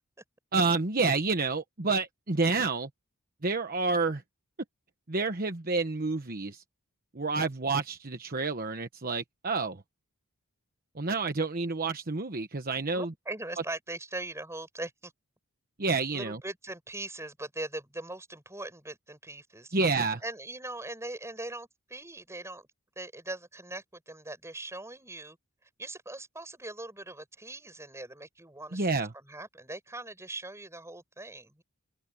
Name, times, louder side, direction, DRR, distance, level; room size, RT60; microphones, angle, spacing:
voice 1, 0.5-2.9 3.4-4.2 5.1-6.6 7.1-9.8 11.0-13.1 15.8-16.4 19.7-20.2 28.7-29.1, right 3 dB, 40° right, 1.1 m, -29 dB
voice 2, 12.9-15.1 16.1-19.7 20.2-22.7 23.0-25.4 25.8-31.6, right 2 dB, 15° right, 6.9 m, -41 dB
open air
head